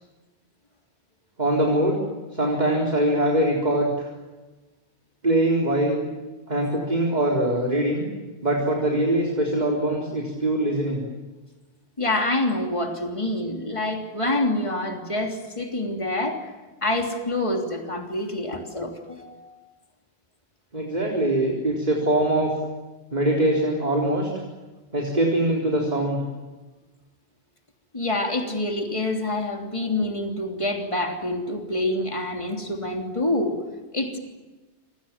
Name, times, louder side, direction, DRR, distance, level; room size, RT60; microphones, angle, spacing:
voice 1, 1.4-2.0 2.3-4.1 5.2-6.0 6.5-8.0 8.4-11.0 20.7-22.5 23.1-24.3 24.9-26.2, right 1 dB, 40° right, -1 dB, 4.3 m, -22 dB
voice 2, 12.0-16.4 16.8-19.5 27.9-33.6 33.9-34.2, left 1 dB, 30° left, 2 dB, 3.2 m, -26 dB
27.5 x 27.0 x 7.4 m, 1.2 s
omnidirectional pair, 1.1 m